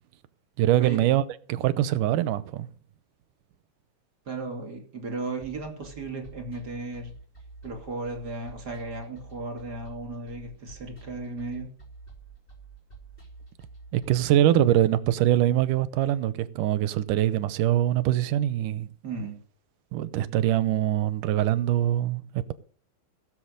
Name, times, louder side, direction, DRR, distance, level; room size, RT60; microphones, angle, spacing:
voice 1, 0.6-1.2 1.5-2.7 13.9-18.9 19.9-22.5, right 13 dB, 90° right, 2.4 m, -23 dB
voice 2, 4.3-7.1 7.6-11.7 19.0-19.4, right 3 dB, 30° right, 2.9 m, -35 dB
sound 1, 5.4-14.3, right 4 dB, 15° left, 3.3 m, -48 dB
16.5 x 7.9 x 6.4 m
omnidirectional pair, 3.6 m